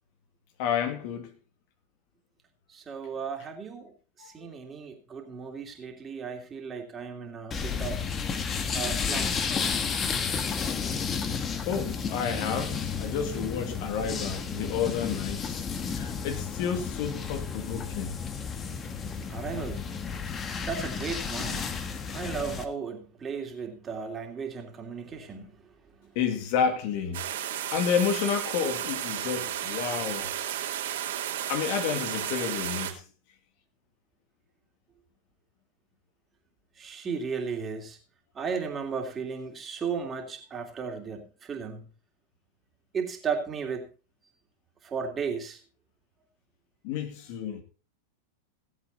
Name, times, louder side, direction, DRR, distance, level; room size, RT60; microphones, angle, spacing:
voice 1, 0.6-1.3 4.2-4.3 11.7-15.6 15.9-18.2 26.2-27.2 27.7-30.3 31.5-33.0 46.8-47.6, left 7 dB, 55° left, 2.4 m, -30 dB
voice 2, 2.7-3.9 4.2-8.0 8.7-9.4 19.3-19.8 20.6-21.8 22.1-25.6 26.0-26.1 36.8-38.0 38.3-41.8 42.9-43.9 44.8-45.6, right 6 dB, 25° right, 3.0 m, -35 dB
sound 1, 7.5-22.6, left 6 dB, 25° left, 1.6 m, -32 dB
sound 2, 27.1-32.9, right 11 dB, 70° right, 3.0 m, -33 dB
18.5 x 8.1 x 4.1 m
hypercardioid pair, 100°, 0 cm